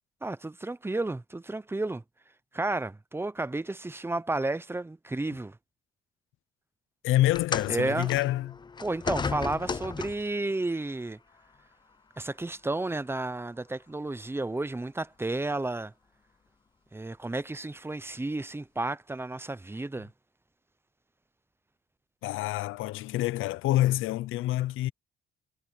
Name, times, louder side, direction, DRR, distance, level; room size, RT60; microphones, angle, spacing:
voice 1, 0.2-2.0 2.5-5.6 7.7-8.1 8.8-11.2 12.2-15.9 16.9-20.1, right 2 dB, 10° right, 0.8 m, -32 dB
voice 2, 7.0-8.6 22.2-24.9, left 15 dB, 90° left, 0.7 m, -27 dB
sound 1, 7.3-10.4 11.4-11.6 12.4-12.5, left 5 dB, 20° left, 0.5 m, -34 dB
cardioid pair, 90°, 20 cm